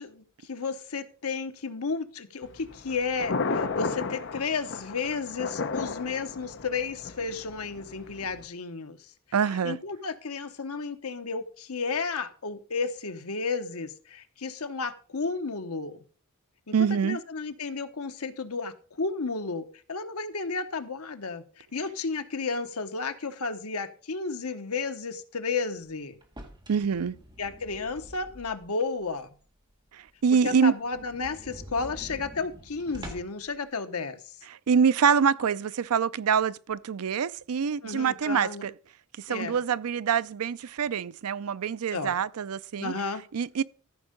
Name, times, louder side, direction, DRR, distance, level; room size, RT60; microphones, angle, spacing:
voice 1, 0.0-9.1 9.6-16.0 16.7-26.2 27.4-29.3 30.4-34.3 37.8-38.7 39.3-39.6 41.9-42.1 42.8-43.2, left 4 dB, 80° left, 1.1 m, -33 dB
Thunder, 2.4-8.4, left 4 dB, 55° left, 0.8 m, -34 dB
voice 2, 9.3-9.8 16.7-17.2 26.7-27.2 29.9-30.7 34.7-38.7 39.2-42.9 43.3-43.6, right 6 dB, 85° right, 0.5 m, -25 dB
sound 1, 26.2-28.8 29.2-29.3 29.7-29.8 30.1-30.2 30.4-30.5 30.8-33.5, equal, 20° right, 1.9 m, -46 dB
14.0 x 5.5 x 5.2 m
head